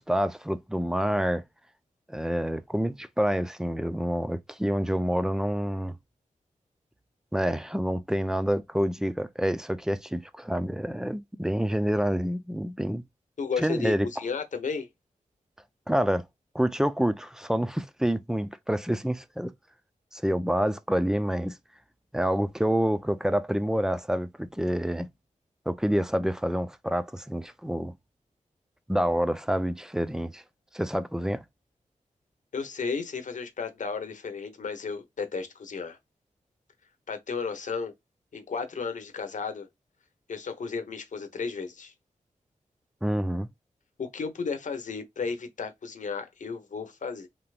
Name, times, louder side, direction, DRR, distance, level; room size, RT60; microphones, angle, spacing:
voice 1, 0.0-1.4 2.1-6.0 7.3-13.0 13.6-14.1 15.9-16.2 16.5-19.5 20.1-21.6 22.1-25.1 25.7-27.9 28.9-30.4 30.7-31.4 43.0-43.5, equal, 5° right, 0.4 m, -27 dB
voice 2, 13.4-14.9 32.5-36.0 37.1-37.9 38.3-39.7 40.3-41.9 44.0-47.3, left 5 dB, 70° left, 0.9 m, -33 dB
3.4 x 2.8 x 2.4 m
wide cardioid pair, 110°, 13 cm